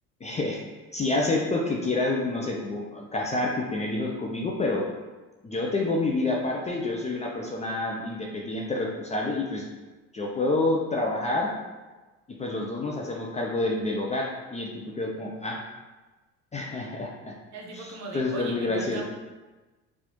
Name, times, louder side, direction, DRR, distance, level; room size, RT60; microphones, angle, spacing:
voice 1, 0.2-0.6 0.9-4.9 5.4-9.7 10.1-11.5 12.4-15.6 16.5-17.3 17.7-19.0, left 2 dB, 20° left, -1 dB, 0.4 m, -28 dB
voice 2, 17.5-19.0, right 3 dB, 45° right, 0 dB, 0.8 m, -39 dB
4.1 x 2.4 x 2.9 m, 1.2 s
supercardioid pair, 85°, 38 cm